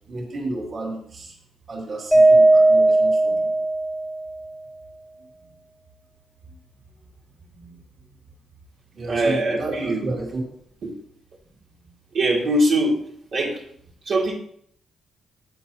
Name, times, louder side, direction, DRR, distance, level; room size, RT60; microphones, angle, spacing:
voice 1, 0.1-1.3 1.7-3.5 7.5-7.8 8.9-10.5 11.8-11.9, right 2 dB, 50° right, -1 dB, 2.7 m, -32 dB
Mallet percussion, 2.1-4.4, right 2 dB, 5° right, 1.4 m, -16 dB
voice 2, 9.1-10.0 10.8-10.9 12.1-13.0 13.3-13.6 14.1-14.3, right 1 dB, 75° right, -5 dB, 2.6 m, -21 dB
13.0 x 8.2 x 2.9 m, 0.66 s
cardioid pair, 90°, 0 cm